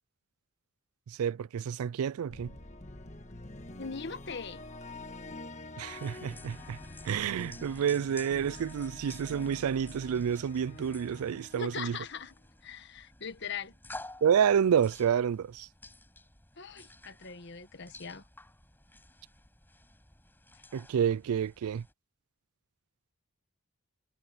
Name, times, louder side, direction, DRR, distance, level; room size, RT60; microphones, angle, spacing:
voice 1, 1.1-2.5 5.8-6.8 7.0-12.0 14.2-15.7 20.7-21.8, right 8 dB, 80° right, 0.3 m, -29 dB
sound 1, 2.3-12.5, left 2 dB, 30° left, 1.5 m, -47 dB
voice 2, 3.8-4.6 11.5-12.3 12.6-13.7 16.6-18.2, left 5 dB, 50° left, 1.3 m, -40 dB
sound 2, 5.9-21.9, left 2 dB, 10° left, 6.2 m, -52 dB
head